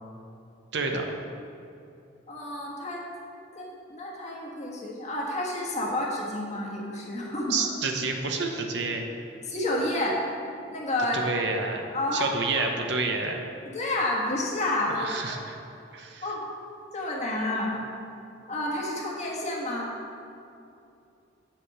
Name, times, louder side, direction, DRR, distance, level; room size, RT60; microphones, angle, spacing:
voice 1, 0.7-1.0 7.5-9.0 11.1-11.8 12.1-13.4 14.9-15.6 15.9-16.2, right 3 dB, 60° right, 3 dB, 0.8 m, -29 dB
voice 2, 2.3-3.0 3.5-7.7 9.5-10.2 10.7-11.2 11.9-12.3 12.5-12.6 13.7-15.4 16.2-16.5 16.9-17.8 18.5-19.9, left 1 dB, 35° left, -3 dB, 1.5 m, -30 dB
7.5 x 5.0 x 7.3 m, 2.6 s
head